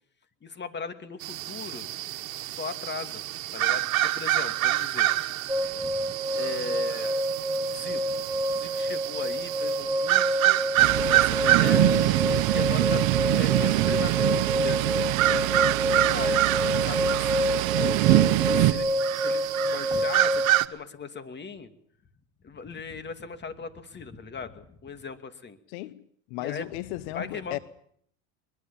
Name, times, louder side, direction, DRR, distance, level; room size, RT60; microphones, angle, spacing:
voice 1, 0.4-1.9 2.3-3.2 3.5-5.1 5.5-7.2 7.7-10.6 11.1-12.2 12.5-13.1 13.3-18.0 18.5-18.9 19.2-21.7 22.4-25.6 26.4-26.7 27.1-27.6, left 4 dB, 25° left, 2.5 m, -39 dB
sound 1, 1.2-20.7, right 15 dB, 90° right, 1.3 m, -28 dB
sound 2, 5.5-20.6, right 1 dB, 10° right, 2.0 m, -28 dB
Thunder, 10.8-18.7, right 17 dB, 60° right, 1.2 m, -24 dB
voice 2, 25.7-26.0 26.3-27.6, left 17 dB, 70° left, 1.0 m, -35 dB
23.0 x 22.0 x 7.2 m
supercardioid pair, 100°, 40 cm